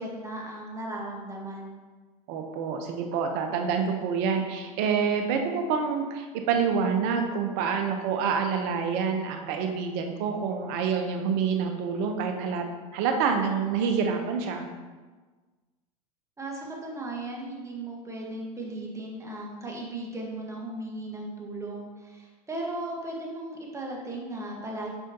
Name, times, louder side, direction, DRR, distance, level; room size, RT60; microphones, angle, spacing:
voice 1, 0.0-1.8 16.4-24.9, right 1 dB, 15° right, -2 dB, 1.6 m, -36 dB
voice 2, 2.3-12.7 12.9-14.7, right 6 dB, 55° right, 4 dB, 1.0 m, -27 dB
8.2 x 5.0 x 2.9 m, 1.3 s
hypercardioid pair, 100°, 19 cm